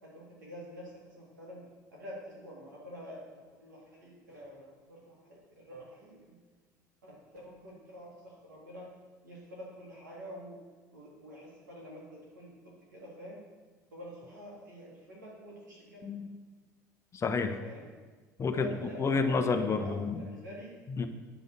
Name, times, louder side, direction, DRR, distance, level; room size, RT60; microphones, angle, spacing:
voice 1, 0.0-1.6 1.9-6.4 7.0-8.9 9.2-10.6 10.9-13.4 13.9-16.1 17.6-17.9 18.5-19.4 19.7-20.8, equal, 80° right, -4 dB, 3.1 m, -47 dB
voice 2, 16.0-16.4 17.1-17.6 18.4-20.3 20.9-21.1, left 4 dB, 30° left, 7 dB, 1.0 m, -30 dB
9.7 x 5.4 x 6.6 m, 1.4 s
figure-of-eight pair, 65°, 10 cm